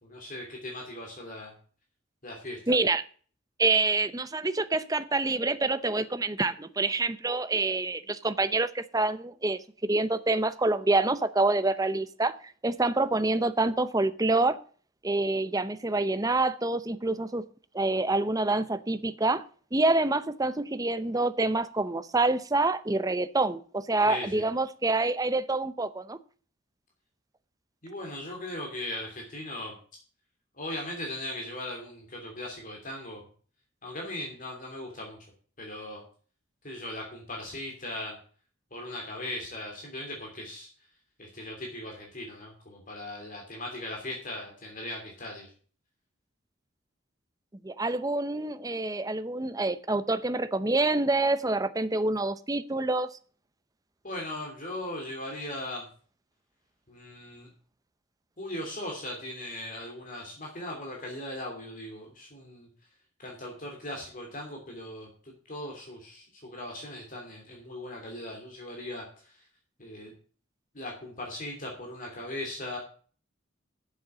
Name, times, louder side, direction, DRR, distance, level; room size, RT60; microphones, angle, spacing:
voice 1, 0.0-1.5 2.2-2.8 24.0-24.4 27.8-29.8 30.5-33.2 33.8-35.2 35.6-36.0 36.6-38.2 38.7-40.7 41.2-45.5 54.0-55.9 56.9-57.5 58.4-62.7 63.2-69.4 69.8-70.1 70.7-72.8, left 1 dB, 40° left, 3.0 m, -39 dB
voice 2, 2.7-3.0 3.6-12.4 12.6-14.6 15.0-17.4 17.7-19.4 19.7-26.2 47.6-53.1, right 2 dB, 20° right, 0.7 m, -27 dB
7.9 x 7.5 x 8.4 m
head